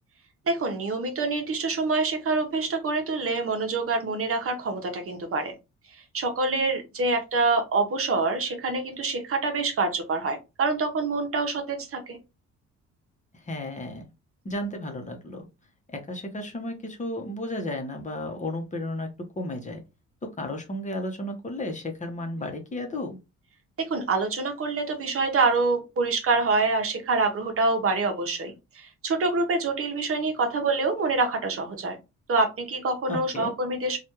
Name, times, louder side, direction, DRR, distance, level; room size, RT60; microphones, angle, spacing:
voice 1, 0.5-5.5 6.1-12.2 23.8-32.0 32.3-34.0, right 3 dB, 50° right, 5 dB, 0.9 m, -26 dB
voice 2, 13.3-14.0 14.4-15.4 15.9-19.8 20.2-23.2 33.1-33.5, left 1 dB, 25° left, 3 dB, 0.9 m, -33 dB
3.3 x 2.4 x 2.8 m, 0.26 s
cardioid pair, 90°, 30 cm